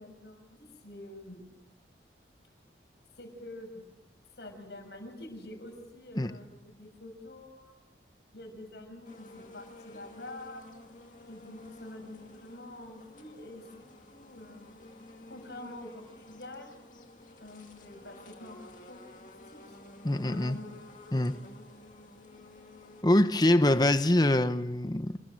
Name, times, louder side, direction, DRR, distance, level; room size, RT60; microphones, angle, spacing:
voice 1, 0.0-1.4 3.2-3.9 4.4-7.7 8.3-10.6 11.3-14.9 15.3-16.8 17.4-19.8 20.1-20.7, left 1 dB, 70° left, 6.1 m, -46 dB
sound 1, 9.0-23.0, left 2 dB, 45° left, 2.4 m, -52 dB
voice 2, 20.0-20.6 21.1-21.4 23.0-25.2, left 1 dB, 20° left, 0.8 m, -24 dB
28.0 x 21.0 x 6.4 m
head